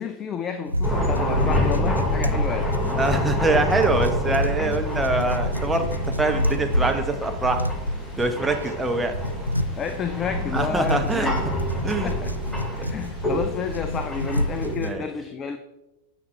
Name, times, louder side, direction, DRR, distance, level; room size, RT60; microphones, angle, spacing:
voice 1, 0.0-2.7 9.7-11.5 12.0-12.3 12.7-15.6, left 6 dB, 25° left, 8 dB, 0.5 m, -30 dB
sound 1, 0.7-14.9, equal, 90° right, 0.3 m, -29 dB
sound 2, 0.8-14.7, left 1 dB, 5° left, 1.4 m, -28 dB
voice 2, 3.0-7.6 8.2-9.1 10.5-11.3 11.8-12.2 12.8-13.0 14.8-15.0, right 2 dB, 10° right, 5 dB, 0.9 m, -24 dB
sound 3, 12.6-14.1, right 3 dB, 70° right, 1.3 m, -41 dB
9.5 x 6.0 x 3.2 m, 0.99 s
figure-of-eight pair, 90°, 0 cm